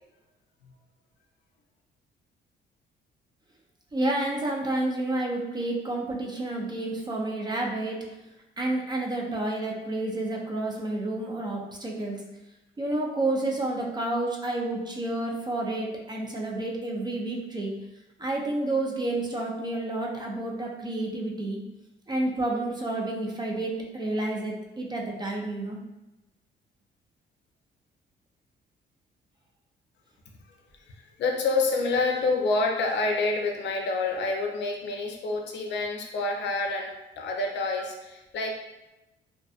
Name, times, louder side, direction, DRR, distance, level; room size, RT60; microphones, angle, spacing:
voice 1, 3.9-8.0 8.6-12.2 12.8-17.7 18.2-21.6 22.1-25.8, right 2 dB, 20° right, -1 dB, 0.5 m, -30 dB
voice 2, 31.2-38.6, left 3 dB, 65° left, 1 dB, 0.5 m, -27 dB
2.5 x 2.4 x 2.3 m, 0.99 s
cardioid pair, 90°, 20 cm